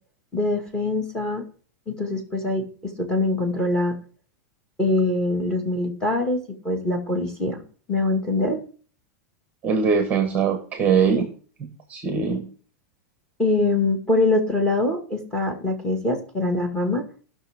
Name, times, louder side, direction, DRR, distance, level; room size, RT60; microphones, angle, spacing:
voice 1, 0.3-1.4 1.9-3.9 4.8-7.6 7.9-8.6 13.4-17.0, left 2 dB, 10° left, 3 dB, 1.8 m, -23 dB
voice 2, 9.6-11.3 11.6-12.5, right 6 dB, 20° right, 7 dB, 1.1 m, -22 dB
16.5 x 6.1 x 3.6 m, 0.42 s
supercardioid pair, 160°, 9 cm